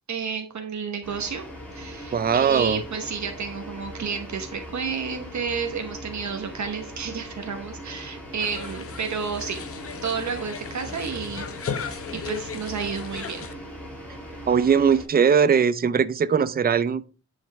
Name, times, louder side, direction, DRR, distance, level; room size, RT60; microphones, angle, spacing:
voice 1, 0.1-1.4 1.7-9.7 10.0-13.5, right 6 dB, 60° right, 1.1 m, -31 dB
sound 1, 1.0-15.0, equal, 5° left, 3.9 m, -40 dB
voice 2, 2.1-2.8 14.5-17.1, right 7 dB, 30° right, 0.4 m, -20 dB
sound 2, 8.4-13.5, left 6 dB, 45° left, 0.7 m, -36 dB
10.0 x 5.6 x 3.4 m
wide cardioid pair, 180°, 33 cm